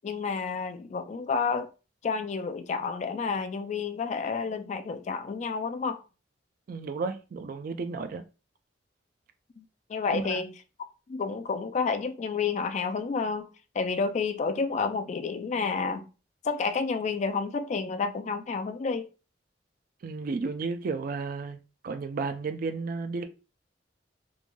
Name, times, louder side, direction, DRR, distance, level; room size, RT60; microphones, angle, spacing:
voice 1, 0.0-1.7 2.0-6.0 9.6-9.7 9.9-10.5 11.1-13.5 13.7-16.0 16.4-19.1, left 5 dB, 40° left, 0.3 m, -30 dB
voice 2, 6.7-8.2 10.1-10.4 20.0-23.2, right 4 dB, 50° right, 0.3 m, -33 dB
3.1 x 2.5 x 2.2 m
head